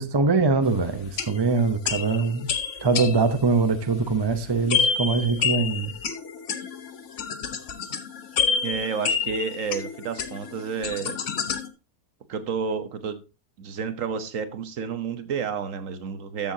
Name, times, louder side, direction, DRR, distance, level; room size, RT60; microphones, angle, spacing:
voice 1, 0.0-2.5 2.8-5.9, right 4 dB, 35° right, 0.4 m, -23 dB
sound 1, 1.0-11.7, left 6 dB, 55° left, 1.1 m, -29 dB
voice 2, 8.6-11.2 12.3-13.2 13.6-16.5, right 6 dB, 60° right, 1.2 m, -30 dB
13.5 x 7.0 x 2.7 m
omnidirectional pair, 1.7 m